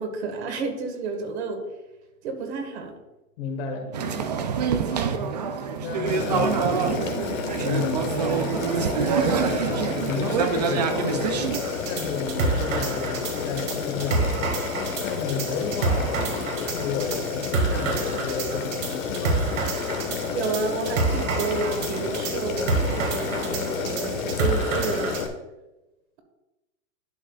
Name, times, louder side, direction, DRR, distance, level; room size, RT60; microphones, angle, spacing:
voice 1, 0.0-1.6 2.2-2.9 20.3-25.2, right 4 dB, 50° right, 4 dB, 1.7 m, -30 dB
voice 2, 3.4-4.3 4.9-5.3 5.8-7.0 7.6-8.4 9.1-11.5 11.8-14.7 15.0-19.4, left 5 dB, 45° left, 3 dB, 1.6 m, -32 dB
sound 1, 3.9-11.6, right 6 dB, 35° right, 0.4 m, -26 dB
Boiling, 6.1-25.3, left 6 dB, 75° left, 1.4 m, -31 dB
sound 2, 11.5-25.2, right 4 dB, 70° right, 2.0 m, -29 dB
11.0 x 7.2 x 2.4 m, 1.0 s
supercardioid pair, 165°, 41 cm